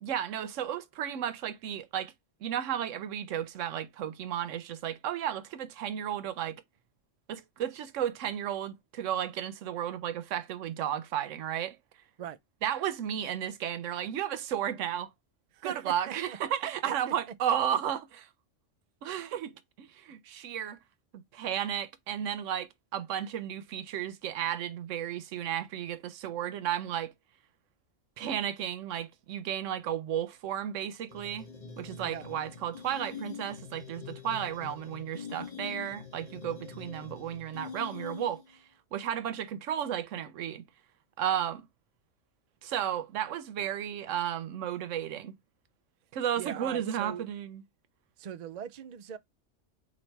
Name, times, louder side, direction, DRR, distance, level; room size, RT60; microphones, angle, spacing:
voice 1, 0.0-2.1 2.4-6.6 7.3-11.8 12.6-15.1 15.6-18.3 19.0-20.8 21.1-27.1 28.2-31.5 31.8-38.6 38.9-40.6 41.2-41.6 42.6-45.3 46.1-47.6, right 10 dB, 80° right, 1.0 m, -33 dB
voice 2, 15.5-16.4 17.1-17.2 32.0-32.3 46.4-47.2 48.2-49.2, right 9 dB, 65° right, 0.4 m, -40 dB
sound 1, 31.1-38.6, left 6 dB, 35° left, 0.8 m, -44 dB
4.1 x 2.5 x 4.5 m
omnidirectional pair, 1.3 m